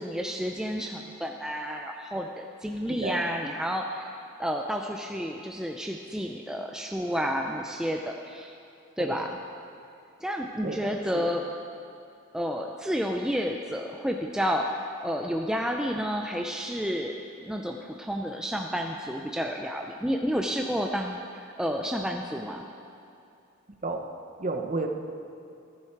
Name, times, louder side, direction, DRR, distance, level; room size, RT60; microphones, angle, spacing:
voice 1, 0.0-4.1 4.4-8.5 9.0-9.4 10.2-11.4 12.3-22.7, equal, 5° right, 2 dB, 0.4 m, -30 dB
voice 2, 10.6-11.2 23.8-24.0 24.4-24.9, right 2 dB, 35° right, 4 dB, 0.9 m, -31 dB
14.5 x 10.5 x 4.6 m, 2.7 s
head